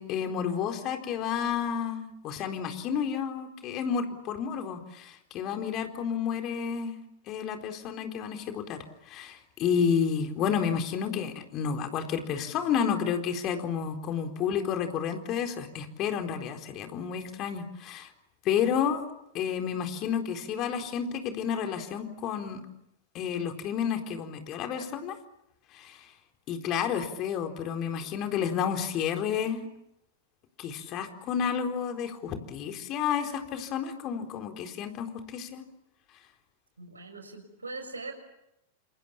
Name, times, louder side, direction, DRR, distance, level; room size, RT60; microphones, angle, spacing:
voice 1, 0.0-7.0 7.3-18.1 18.4-19.0 19.3-22.6 23.1-25.2 25.7-26.1 26.5-29.7 30.6-35.6, left 7 dB, 35° left, 5 dB, 4.1 m, -31 dB
voice 2, 36.8-38.1, right 3 dB, 80° right, 6 dB, 6.3 m, -41 dB
29.0 x 27.5 x 7.3 m, 0.81 s
figure-of-eight pair, 95°, 0 cm